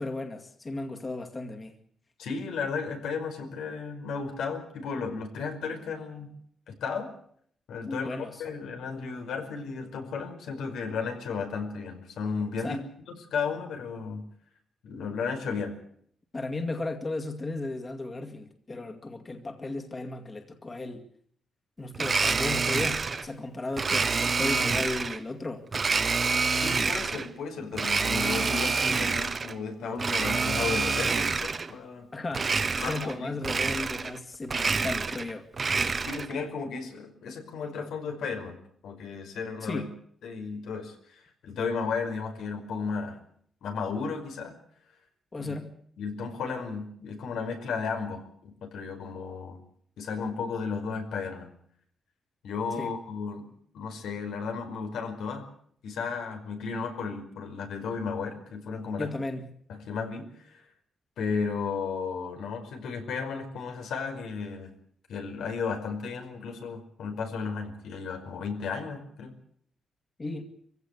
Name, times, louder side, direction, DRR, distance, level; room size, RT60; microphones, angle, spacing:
voice 1, 0.0-1.8 7.8-8.4 12.6-12.8 16.3-21.1 21.8-25.7 32.1-32.5 32.8-35.5 39.6-39.9 45.3-45.7 52.7-53.0 59.0-59.5 70.2-70.5, left 2 dB, 25° left, 5 dB, 2.2 m, -35 dB
voice 2, 2.2-6.3 6.7-7.1 7.7-12.8 13.3-14.2 14.8-15.7 26.5-32.1 32.8-33.4 35.9-39.9 40.2-43.2 43.6-44.6 45.4-45.5 46.0-49.6 50.0-51.5 52.4-53.4 53.7-55.5 55.8-59.1 59.7-60.6 61.2-64.7 65.1-69.3, left 5 dB, 90° left, 5 dB, 5.1 m, -34 dB
Domestic sounds home sounds, 21.9-23.3 23.8-25.2 25.7-27.3 27.7-29.5 29.9-31.7 32.3-33.2 33.4-34.2 34.4-36.3, right 4 dB, 35° right, 1.1 m, -27 dB
24.5 x 16.5 x 8.3 m, 0.63 s
cardioid pair, 125°, 0 cm